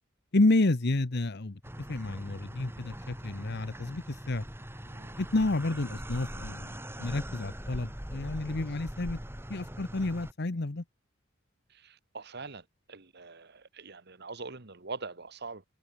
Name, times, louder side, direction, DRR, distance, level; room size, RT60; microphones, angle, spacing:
voice 1, 0.3-1.6 1.9-4.4 5.2-9.2 9.5-10.8, left 2 dB, 55° left, 1.0 m, -30 dB
sound 1, 1.6-10.3, equal, 10° right, 4.3 m, -42 dB
voice 2, 4.8-5.2 11.7-15.6, right 4 dB, 55° right, 1.8 m, -43 dB
head